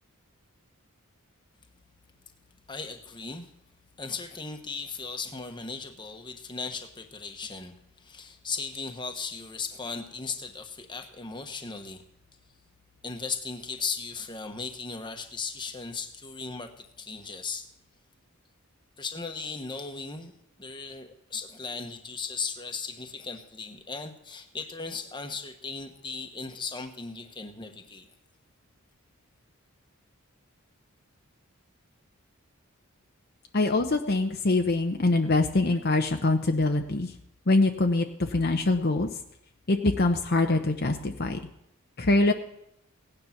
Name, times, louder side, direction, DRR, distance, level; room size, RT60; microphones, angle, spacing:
voice 1, 2.7-3.5 4.0-12.0 13.0-17.7 19.0-20.3 20.6-28.0, left 4 dB, 20° left, 6 dB, 1.2 m, -37 dB
voice 2, 33.5-37.1 37.5-39.1 39.7-41.4 42.0-42.3, left 2 dB, 45° left, 4 dB, 0.8 m, -24 dB
17.0 x 9.7 x 5.9 m, 0.79 s
head